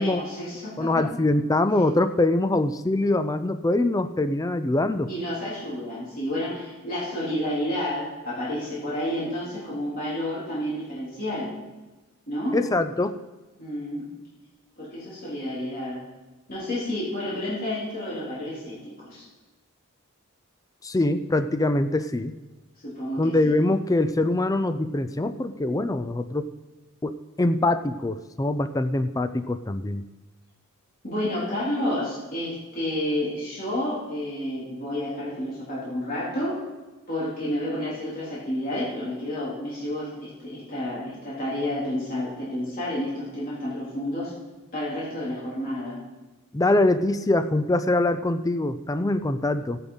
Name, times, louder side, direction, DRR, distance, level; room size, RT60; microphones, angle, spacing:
voice 1, 0.0-1.1 5.1-11.5 12.3-12.6 13.6-14.1 14.8-16.0 16.5-19.2 22.8-23.3 31.0-36.6 37.1-44.3 44.7-46.0, left 1 dB, 40° left, -8 dB, 3.8 m, -30 dB
voice 2, 0.8-5.1 12.5-13.2 20.8-22.4 23.2-26.5 27.0-30.0 46.5-49.8, left 2 dB, 15° left, 10 dB, 0.4 m, -23 dB
16.0 x 9.6 x 4.1 m, 1.1 s
head